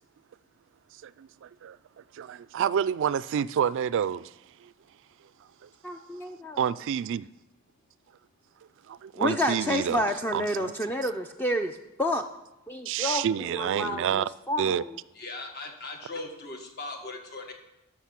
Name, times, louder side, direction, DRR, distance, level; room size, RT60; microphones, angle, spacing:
voice 1, 1.0-4.3 4.6-4.7 5.6-5.7 6.6-7.3 8.9-10.1 10.3-10.7 12.9-14.3 14.6-14.8, right 8 dB, 60° right, 0.3 m, -29 dB
voice 2, 5.8-6.6 9.2-12.2 12.7-13.3 13.5-15.0, left 1 dB, 10° left, 0.4 m, -29 dB
voice 3, 15.2-17.5, left 2 dB, 50° left, 1.5 m, -39 dB
13.0 x 6.1 x 5.9 m
head